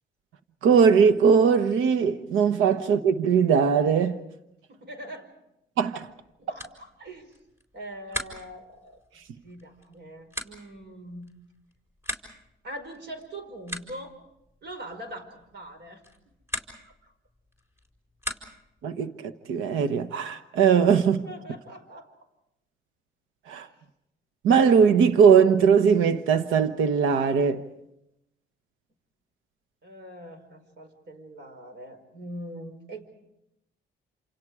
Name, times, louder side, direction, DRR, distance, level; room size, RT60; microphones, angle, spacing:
voice 1, 0.6-4.2 5.8-6.1 18.8-21.2 23.5-23.7 24.4-27.6, right 6 dB, 90° right, 1.1 m, -20 dB
voice 2, 4.7-5.3 6.4-7.4 7.7-9.0 9.4-11.3 12.6-14.2 14.6-16.0 16.8-17.1 18.8-18.9 20.7-20.9 21.2-22.1 23.5-23.7 29.8-33.1, right 1 dB, 60° right, 5.3 m, -42 dB
sound 1, 6.1-18.8, left 1 dB, 10° right, 4.8 m, -42 dB
28.0 x 28.0 x 4.9 m
cardioid pair, 90°, 20 cm